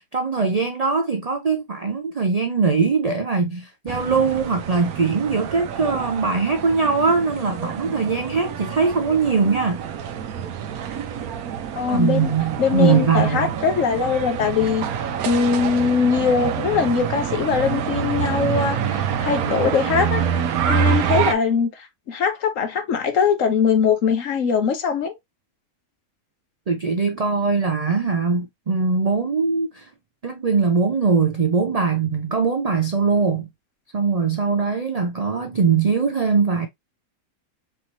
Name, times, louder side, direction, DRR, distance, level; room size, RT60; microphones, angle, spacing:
voice 1, 0.0-9.8 11.9-13.5 26.7-29.8 30.2-33.5 33.9-36.7, right 5 dB, 55° right, 0.4 m, -21 dB
sound 1, 3.9-21.3, right 8 dB, 85° right, 1.1 m, -27 dB
voice 2, 11.8-12.3 12.6-14.9 15.2-20.3 20.7-21.7 22.1-25.1, left 6 dB, 65° left, 1.3 m, -21 dB
4.6 x 3.1 x 2.6 m
omnidirectional pair, 1.5 m